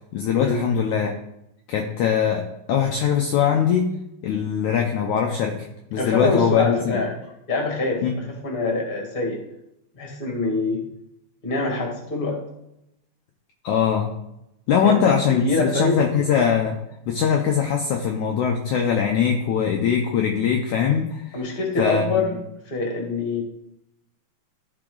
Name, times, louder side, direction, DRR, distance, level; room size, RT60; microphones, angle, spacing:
voice 1, 0.1-1.1 1.7-3.9 4.2-5.5 5.9-6.9 8.0-8.1 13.6-14.1 14.7-16.8 17.1-22.2, left 7 dB, 80° left, 2 dB, 1.7 m, -21 dB
voice 2, 5.9-7.1 7.5-9.4 9.9-10.8 11.4-12.4 14.8-16.0 21.3-22.4 22.6-23.4, left 3 dB, 20° left, 0 dB, 1.5 m, -25 dB
14.5 x 4.9 x 3.9 m, 0.83 s
omnidirectional pair, 4.4 m